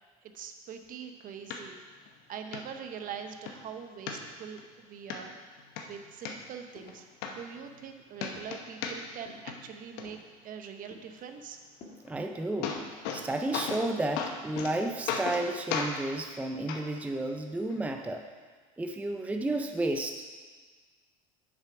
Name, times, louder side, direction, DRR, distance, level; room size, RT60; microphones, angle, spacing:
voice 1, 0.2-1.8 2.3-5.4 5.8-10.2 10.4-11.6, right 7 dB, 45° right, 7 dB, 0.9 m, -43 dB
sound 1, 1.5-1.6 2.1-2.2 2.5-2.6 3.1-3.5 4.1-4.6 5.1-5.2 5.6-6.3 6.9-7.0 7.2-7.9 8.2-9.2 9.5-10.0 12.1-12.2 12.4-13.2 13.5-13.9 14.2-14.7 15.1-15.4 15.7-15.9 16.7-16.8 17.7-17.8, left 6 dB, 65° left, 1.0 m, -34 dB
sound 2, 6.4-6.5 6.7-7.8 8.3-8.7 9.2-9.6 10.0-10.4 10.9-11.2 11.8-12.0 12.8-13.3 13.7-14.0 14.4-14.9, left 3 dB, 45° left, 1.6 m, -51 dB
voice 2, 12.0-12.8 13.1-18.3 18.8-20.2, right 2 dB, 5° right, 5 dB, 0.5 m, -32 dB
7.0 x 6.5 x 4.9 m, 1.5 s
hypercardioid pair, 90°, 19 cm